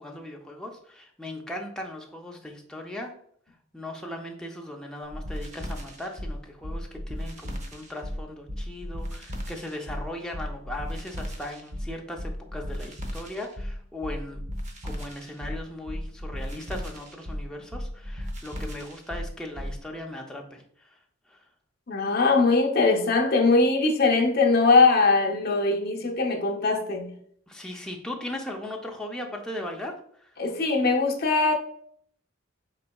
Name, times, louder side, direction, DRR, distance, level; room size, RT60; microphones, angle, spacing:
voice 1, 0.0-3.1 3.7-14.4 14.8-21.0 21.3-21.4 27.5-30.3, left 1 dB, 5° left, 0.5 m, -38 dB
sound 1, 5.1-19.8, equal, 35° right, 0.6 m, -35 dB
voice 2, 21.9-27.1 30.4-31.5, left 3 dB, 50° left, 0.6 m, -21 dB
4.3 x 4.0 x 2.3 m
head